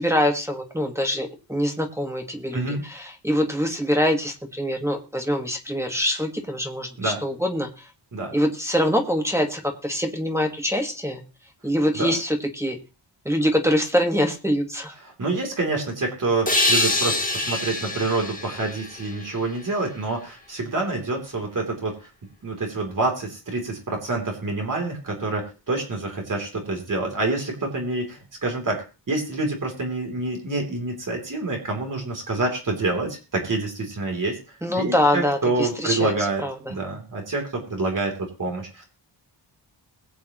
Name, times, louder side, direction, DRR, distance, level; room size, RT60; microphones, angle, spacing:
voice 1, 0.0-7.9 8.3-11.2 11.6-12.8 13.2-15.0 34.6-36.1 36.4-36.7, equal, 5° right, 2 dB, 1.5 m, -24 dB
voice 2, 15.2-22.1 22.4-36.4 36.7-38.9, right 2 dB, 45° right, 1 dB, 3.2 m, -27 dB
sound 1, 16.5-20.0, left 2 dB, 20° left, 1.8 m, -25 dB
21.5 x 8.6 x 3.0 m, 0.32 s
wide cardioid pair, 170°, 44 cm